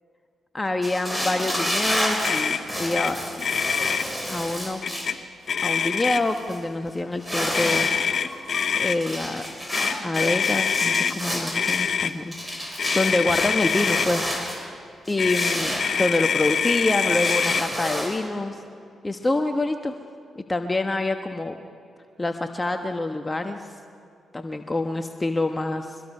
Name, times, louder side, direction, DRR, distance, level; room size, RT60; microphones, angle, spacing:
voice 1, 0.5-3.3 4.3-4.8 5.6-7.9 8.8-12.4 12.6-14.7 15.1-18.6 19.0-20.0 20.3-21.6 22.2-23.7 24.3-26.0, left 2 dB, 25° left, 6 dB, 1.2 m, -26 dB
sound 1, 0.8-5.1 5.7-5.8 6.1-6.6 7.1-8.0 8.3-14.6 15.0-16.6 16.9-18.2, equal, 5° right, 4.9 m, -30 dB
Motor vehicle (road), 2.2-2.6 2.9-3.1 3.4-4.0 4.8-5.1 5.5-6.4 7.5-9.0 9.7-11.1 11.5-12.1 12.8-14.1 15.2-17.6, left 6 dB, 60° left, 0.8 m, -24 dB
24.0 x 21.0 x 5.6 m, 2.4 s
supercardioid pair, 45°, 0 cm